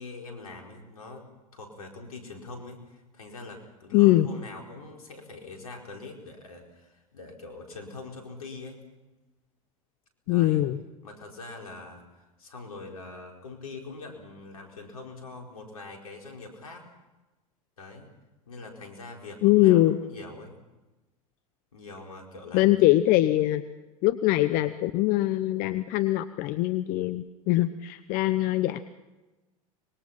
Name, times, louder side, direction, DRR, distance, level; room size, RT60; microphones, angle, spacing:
voice 1, 0.0-8.8 10.3-10.6 11.0-16.9 17.8-18.1 18.5-20.5 21.7-22.7 24.3-24.5, left 3 dB, 85° left, 2 dB, 4.6 m, -43 dB
voice 2, 3.9-4.3 10.3-10.8 19.4-20.0 22.5-23.6 24.0-28.8, left 16 dB, 55° left, 13 dB, 0.9 m, -22 dB
25.0 x 22.5 x 5.8 m, 1.1 s
hypercardioid pair, 85°, 18 cm